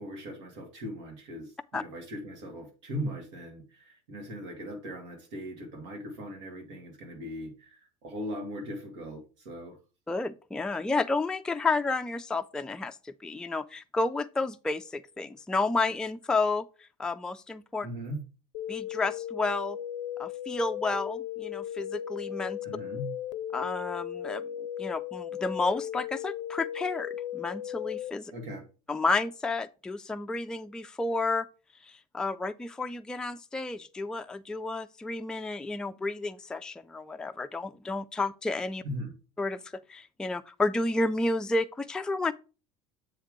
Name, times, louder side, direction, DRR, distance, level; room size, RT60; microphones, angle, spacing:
voice 1, 0.0-9.8 17.8-18.2 22.6-23.1 28.3-28.6 38.8-39.1, equal, 85° right, 2.4 m, -39 dB
voice 2, 10.1-17.9 18.7-19.8 20.2-22.6 23.5-24.5 24.8-28.3 28.9-31.5 31.8-38.8 39.4-42.3, left 3 dB, 5° left, 0.3 m, -31 dB
sound 1, 18.5-28.1, left 11 dB, 90° left, 0.5 m, -36 dB
7.4 x 3.5 x 4.8 m
supercardioid pair, 110°, 16 cm